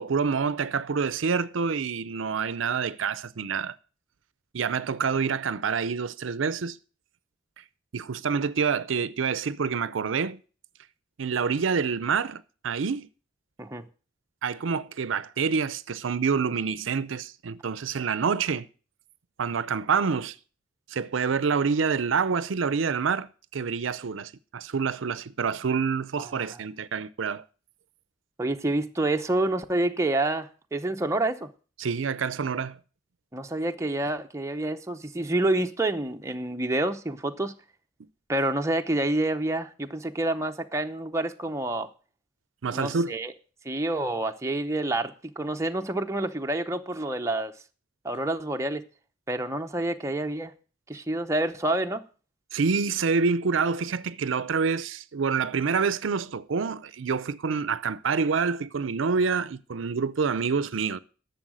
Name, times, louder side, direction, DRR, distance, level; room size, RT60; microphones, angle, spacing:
voice 1, 0.0-3.8 4.5-6.8 7.9-10.4 11.2-13.1 14.4-18.7 19.4-20.4 20.9-27.4 31.8-32.8 42.6-43.1 52.5-61.0, right 5 dB, 75° right, 0.5 m, -27 dB
voice 2, 26.2-26.6 28.4-31.5 33.3-37.5 38.3-41.9 42.7-43.3 43.6-47.5 48.0-48.8 49.3-50.5 50.9-52.0, right 2 dB, 15° right, 0.7 m, -28 dB
11.5 x 7.1 x 6.2 m
head